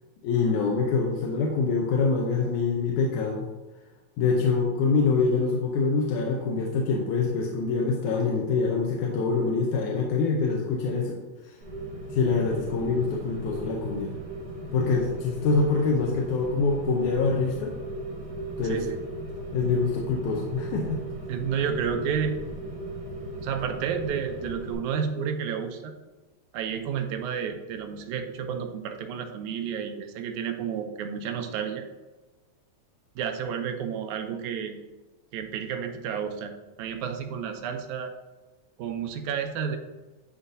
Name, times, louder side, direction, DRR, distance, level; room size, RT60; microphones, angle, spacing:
voice 1, 0.2-3.5 4.2-11.2 11.4-11.5 12.1-14.1 14.7-17.7 18.6-18.8 19.5-21.0, left 4 dB, 90° left, -1 dB, 2.2 m, -25 dB
Rain, 11.6-24.7, right 2 dB, 60° right, 3.4 m, -37 dB
voice 2, 18.6-19.0 21.3-22.4 23.4-25.9 26.5-31.8 33.2-34.8 35.3-36.5 36.8-38.1 38.8-39.8, right 7 dB, 90° right, 5 dB, 2.0 m, -31 dB
11.0 x 4.0 x 2.6 m, 1.2 s
omnidirectional pair, 3.4 m